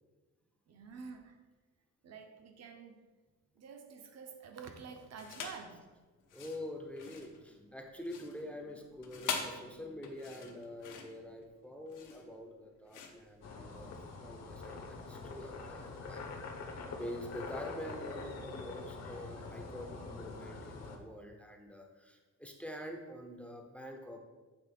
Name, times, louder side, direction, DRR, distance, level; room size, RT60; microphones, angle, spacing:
voice 1, 0.7-1.4 2.0-3.0 3.5-5.9, right 5 dB, 55° right, 5 dB, 0.9 m, -49 dB
sound 1, 5.2-5.7 6.2-14.0, left 5 dB, 85° left, 1.0 m, -44 dB
voice 2, 6.3-14.0 14.2-16.2 17.0-24.2, left 1 dB, 5° left, 3 dB, 0.6 m, -46 dB
sound 2, 13.4-21.0, left 3 dB, 60° left, 1.0 m, -45 dB
8.0 x 3.6 x 5.2 m, 1.3 s
wide cardioid pair, 165°, 30 cm